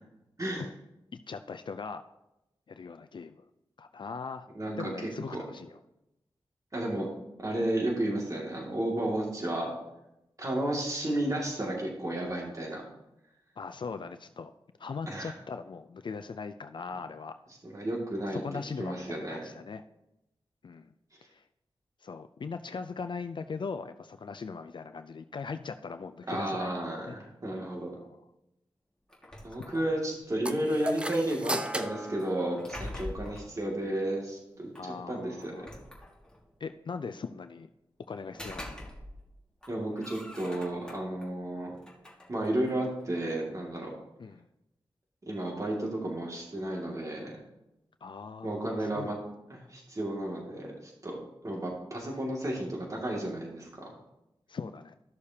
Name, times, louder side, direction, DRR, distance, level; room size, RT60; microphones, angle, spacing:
voice 1, 0.4-0.7 1.1-2.0 2.7-3.4 3.8-4.5 4.8-5.8 13.6-14.5 14.8-17.3 18.2-19.8 20.6-20.9 21.3-21.4 22.0-26.7 27.1-27.2 27.9-28.2 29.5-29.8 33.2-33.5 34.8-35.7 36.6-37.7 38.1-38.7 44.2-44.5 48.0-49.2 52.0-52.2 54.5-55.0, left 5 dB, 60° left, 9 dB, 0.4 m, -40 dB
voice 2, 4.6-4.9 5.3-5.4 6.7-7.1 7.4-9.7 10.4-12.8 15.1-15.3 17.6-18.4 18.8-19.4 26.3-27.9 29.4-35.7 39.7-41.7 42.3-43.9 45.3-47.4 48.4-49.2 49.5-51.2 51.4-53.9, right 1 dB, 35° right, -2 dB, 2.2 m, -32 dB
sound 1, 29.1-30.2 32.2-33.5 34.7-34.9 35.4-36.5 38.1-39.3 39.6-41.3 41.7-43.4, left 1 dB, 10° left, 1.8 m, -44 dB
sound 2, 30.4-33.1, right 1 dB, 10° right, 0.7 m, -35 dB
13.5 x 6.6 x 2.8 m, 0.89 s
wide cardioid pair, 80°, 9 cm